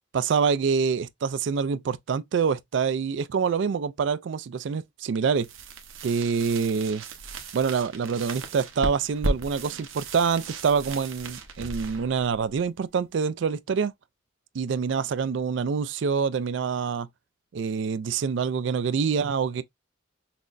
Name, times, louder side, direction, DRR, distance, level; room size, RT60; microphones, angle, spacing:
voice 1, 0.1-5.5 6.0-7.0 7.5-13.9 14.5-17.1 17.5-19.6, right 6 dB, 65° right, 0.3 m, -26 dB
sound 1, 5.4-13.1, right 2 dB, 85° right, 0.9 m, -36 dB
5.9 x 2.0 x 2.5 m
head